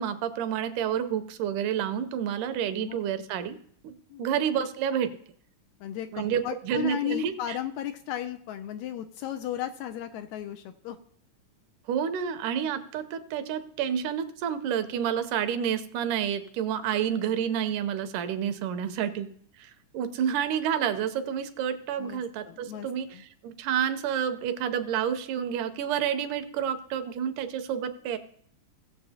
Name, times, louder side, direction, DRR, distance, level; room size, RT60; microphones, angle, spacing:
voice 1, 0.0-3.6 3.8-5.1 6.1-7.6 11.9-19.3 19.6-28.2, right 9 dB, 85° right, 10 dB, 2.3 m, -29 dB
voice 2, 2.7-3.0 4.1-4.3 5.8-11.0 22.0-23.2, left 11 dB, 80° left, 8 dB, 1.7 m, -35 dB
18.0 x 7.3 x 2.8 m, 0.63 s
omnidirectional pair, 3.6 m